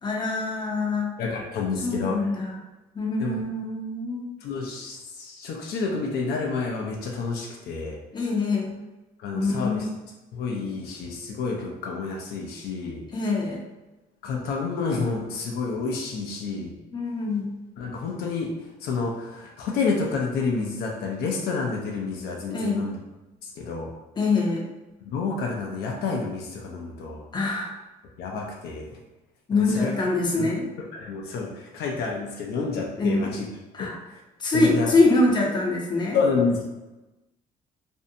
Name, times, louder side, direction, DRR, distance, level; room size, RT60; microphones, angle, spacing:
voice 1, 0.0-1.1 1.8-2.6 2.9-4.3 8.1-8.7 9.3-9.9 13.1-13.6 16.9-17.5 22.5-22.9 24.2-24.6 27.3-27.7 29.5-30.6 33.0-33.2 33.7-34.0 34.4-36.2, left 3 dB, 25° left, -1 dB, 0.6 m, -24 dB
voice 2, 1.2-2.3 3.2-3.4 4.4-8.0 9.2-9.8 10.3-13.1 14.2-16.8 17.8-18.5 18.8-23.0 23.6-23.9 25.0-27.2 28.2-29.0 29.5-29.9 30.4-30.5 30.9-33.4 33.8-33.9 34.5-34.9 36.1-36.6, left 4 dB, 75° left, 0 dB, 0.5 m, -29 dB
2.6 x 2.1 x 2.6 m, 1.1 s
cardioid pair, 110°, 17 cm